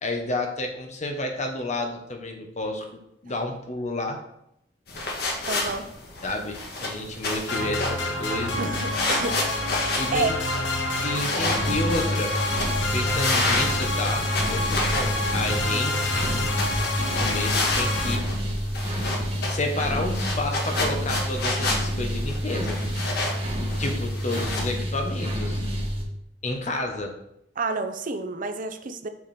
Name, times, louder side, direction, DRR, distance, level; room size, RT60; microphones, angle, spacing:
voice 1, 0.0-4.2 6.2-8.6 9.9-10.3 11.0-12.4 12.9-16.3 16.9-18.2 19.4-22.8 23.8-25.6 26.4-27.1, left 2 dB, 40° left, 3 dB, 1.2 m, -30 dB
sound 1, 4.9-24.7, left 2 dB, 60° left, 1.6 m, -31 dB
voice 2, 5.5-5.9 8.6-9.4 10.1-10.3 27.6-29.1, right 3 dB, 50° right, 8 dB, 0.6 m, -29 dB
sound 2, 7.5-18.2, left 2 dB, 80° left, 1.3 m, -28 dB
sound 3, 11.5-26.0, equal, 30° right, 1.8 m, -29 dB
6.6 x 6.2 x 4.3 m, 0.78 s
head